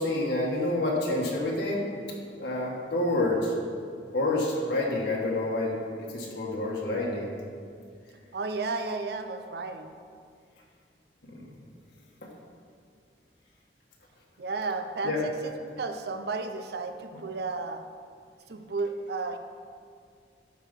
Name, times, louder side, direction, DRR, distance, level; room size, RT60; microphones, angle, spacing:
voice 1, 0.0-1.9 2.4-3.5 4.1-7.3 11.3-11.5 15.0-15.2 17.1-17.2, left 2 dB, 70° left, -3 dB, 1.4 m, -28 dB
voice 2, 8.3-10.0 14.4-17.8 18.5-19.4, right 3 dB, 60° right, 7 dB, 0.6 m, -33 dB
12.5 x 4.7 x 5.2 m, 2.3 s
head